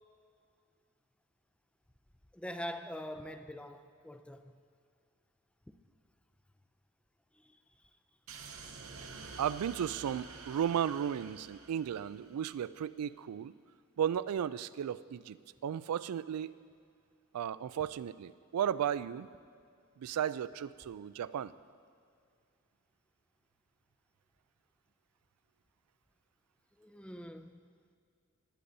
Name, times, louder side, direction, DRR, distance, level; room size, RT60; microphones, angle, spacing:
voice 1, 2.3-4.5 7.3-7.9 26.8-27.6, equal, 5° left, 8 dB, 0.4 m, -44 dB
sound 1, 8.3-12.6, right 4 dB, 65° right, 0.9 m, -49 dB
voice 2, 9.4-13.5 14.0-15.4 15.6-16.5 17.3-19.3 20.0-21.5, right 9 dB, 85° right, 16 dB, 0.3 m, -34 dB
19.5 x 10.0 x 2.7 m, 2.2 s
head